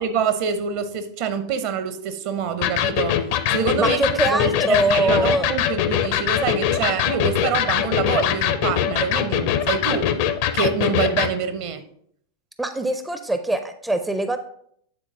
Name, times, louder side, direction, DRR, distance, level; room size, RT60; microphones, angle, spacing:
voice 1, 0.0-3.2 3.5-4.0 4.3-10.1 10.5-11.8, right 6 dB, 45° right, 0.7 m, -26 dB
Electric guitar, 2.6-11.4, left 9 dB, 50° left, 0.5 m, -22 dB
voice 2, 3.8-5.5 9.3-9.5 12.6-14.4, right 2 dB, 5° right, 0.4 m, -23 dB
8.7 x 3.9 x 3.6 m
figure-of-eight pair, 90°, 0 cm